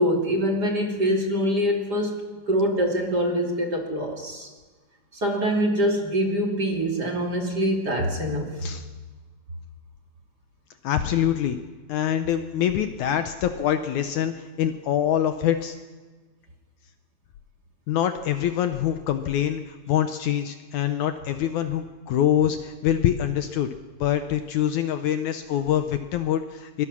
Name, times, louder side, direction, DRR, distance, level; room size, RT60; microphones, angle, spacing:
voice 1, 0.0-2.2 2.5-4.5 5.1-8.6, equal, 30° right, 1 dB, 2.5 m, -24 dB
voice 2, 10.8-11.6 11.9-15.8 17.9-23.7 24.0-26.9, left 10 dB, 70° left, 8 dB, 2.0 m, -25 dB
23.0 x 22.5 x 6.2 m, 1.3 s
omnidirectional pair, 3.9 m